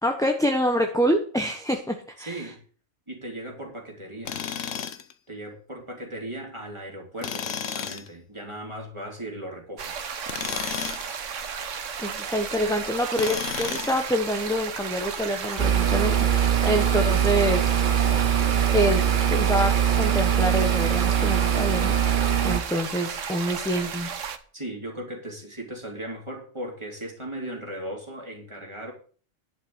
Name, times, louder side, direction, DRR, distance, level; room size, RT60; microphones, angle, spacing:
voice 1, 0.0-2.4 12.0-17.7 18.7-19.0 19.3-24.1, equal, 5° left, 4 dB, 1.1 m, -26 dB
voice 2, 2.2-2.6 3.1-4.4 5.3-10.1 18.0-18.3 24.5-28.9, right 1 dB, 20° right, 0 dB, 3.5 m, -37 dB
Tools, 4.3-5.1 7.2-8.1 10.2-11.1 13.1-14.1, left 8 dB, 75° left, 1.3 m, -32 dB
sound 1, 9.8-24.4, right 6 dB, 70° right, 1.4 m, -34 dB
sound 2, 15.6-22.6, right 9 dB, 40° right, 0.9 m, -22 dB
11.0 x 5.9 x 7.9 m, 0.42 s
omnidirectional pair, 1.3 m